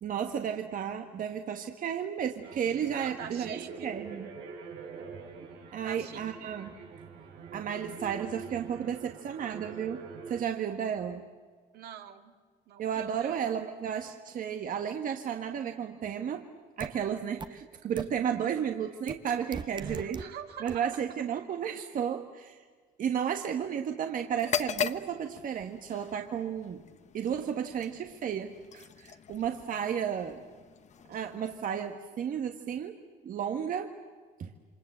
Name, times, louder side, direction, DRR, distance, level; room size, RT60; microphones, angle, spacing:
voice 1, 0.0-4.3 5.7-6.7 7.5-11.3 12.8-16.4 16.8-20.2 20.6-22.6 23.0-26.8 27.1-30.4 31.1-32.9 33.2-33.9 34.4-34.5, right 8 dB, 55° right, 5 dB, 1.5 m, -33 dB
sound 1, 2.4-10.4, right 5 dB, 85° right, 5.2 m, -45 dB
voice 2, 3.0-3.9 5.8-6.2 11.7-12.3 12.7-13.5 18.5-18.6 19.8-21.3, right 9 dB, 70° right, 6 dB, 2.1 m, -45 dB
sound 2, 16.8-16.9 17.4-17.5 18.0-18.1 19.1-19.2 19.5-20.2 20.7-20.8, right 5 dB, 25° right, 1.1 m, -36 dB
sound 3, 24.3-32.2, left 7 dB, 45° left, 1.0 m, -40 dB
28.0 x 26.0 x 7.9 m, 1.5 s
cardioid pair, 110°, 17 cm